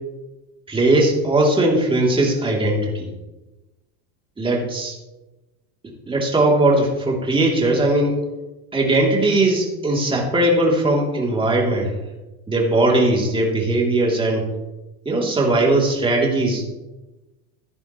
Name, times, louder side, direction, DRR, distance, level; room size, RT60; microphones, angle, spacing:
voice 1, 0.7-3.1 4.4-4.9 6.1-8.2 8.7-11.9 12.5-14.5 15.0-16.6, right 2 dB, 10° right, -2 dB, 3.0 m, -19 dB
15.0 x 10.5 x 3.1 m, 1.1 s
supercardioid pair, 130°, 42 cm